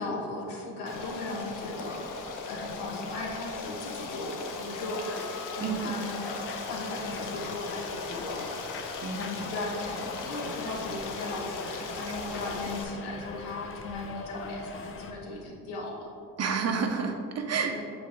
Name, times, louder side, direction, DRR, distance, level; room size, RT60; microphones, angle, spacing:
voice 1, 0.0-5.2 5.6-16.1 17.7-17.8, left 2 dB, 80° left, -1 dB, 1.3 m, -37 dB
Stream, 0.9-12.8, left 4 dB, 55° left, 0.8 m, -38 dB
Subway metro underground, 4.8-15.1, left 4 dB, 35° left, 0.6 m, -43 dB
voice 2, 5.6-5.9 9.0-9.3 12.0-12.1 16.4-17.8, right 5 dB, 40° right, 5 dB, 0.7 m, -30 dB
7.1 x 4.9 x 3.5 m, 2.5 s
supercardioid pair, 80°, 38 cm